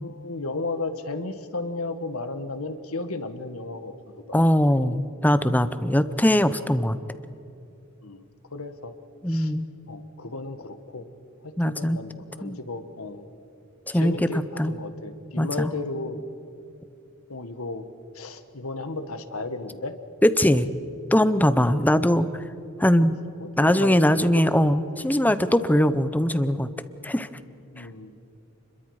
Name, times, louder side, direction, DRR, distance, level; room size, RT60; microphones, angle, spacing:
voice 1, 0.0-4.4 4.7-4.8 8.0-8.2 8.5-8.9 9.3-9.5 9.9-11.0 11.4-13.3 13.9-16.2 17.3-17.8 18.1-19.9 21.5-21.9 23.0-24.7 27.7-28.2, left 3 dB, 85° left, 9 dB, 1.6 m, -34 dB
voice 2, 4.3-7.0 9.2-9.7 11.6-12.0 12.4-12.6 13.9-14.3 14.6-14.7 15.4-15.7 20.2-20.7 21.1-22.4 22.8-23.2 23.6-26.7 27.0-27.3 27.8-27.9, equal, 10° left, 12 dB, 0.8 m, -21 dB
30.0 x 22.0 x 4.9 m, 2.8 s
head